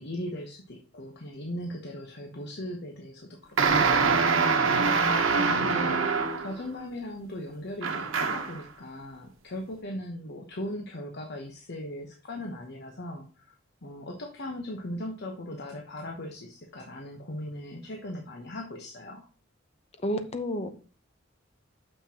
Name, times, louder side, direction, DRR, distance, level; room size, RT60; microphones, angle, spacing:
voice 1, 0.0-4.3 4.6-13.5 13.8-19.3, left 1 dB, 60° left, 2 dB, 1.0 m, -39 dB
sound 1, 3.6-6.6 7.8-8.6, right 4 dB, 85° right, 1.0 m, -24 dB
voice 2, 20.0-20.7, equal, 30° left, 8 dB, 0.9 m, -30 dB
6.8 x 5.9 x 2.9 m, 0.38 s
head